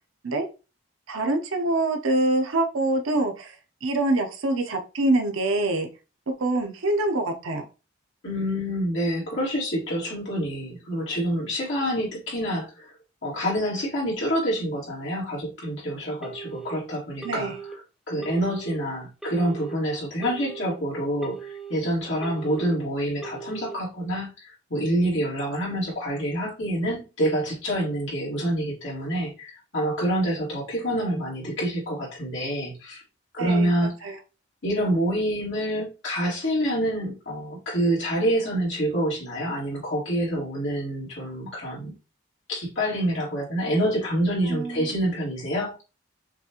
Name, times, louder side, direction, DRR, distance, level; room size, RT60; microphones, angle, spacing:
voice 1, 1.1-3.6 3.8-5.9 6.4-7.7 17.2-17.6 33.4-33.7 34.0-34.2 44.5-44.9, right 2 dB, 85° right, 5 dB, 0.7 m, -25 dB
voice 2, 8.2-12.9 13.2-17.5 18.1-33.0 33.3-33.9 34.6-41.9 42.5-45.8, equal, 70° left, -6 dB, 2.1 m, -27 dB
Telephone, 16.2-16.7 17.2-17.7 18.2-18.7 19.2-19.7 20.2-20.7 21.2-21.7 22.2-22.7 23.2-23.7, right 5 dB, ahead, 0.8 m, -39 dB
5.9 x 2.4 x 2.9 m, 0.31 s
head